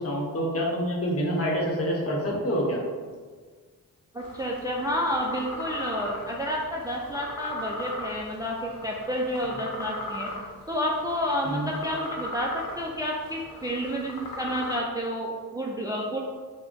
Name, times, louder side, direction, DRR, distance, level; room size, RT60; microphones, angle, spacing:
voice 1, 0.0-2.8 9.5-9.6 11.4-11.7, equal, 40° left, -2 dB, 0.9 m, -27 dB
voice 2, 4.1-10.3 10.7-16.2, equal, 10° right, -2 dB, 0.3 m, -30 dB
sound 1, 4.2-14.8, left 1 dB, 80° left, 0.7 m, -38 dB
3.5 x 2.2 x 3.8 m, 1.5 s
cardioid pair, 80°, 35 cm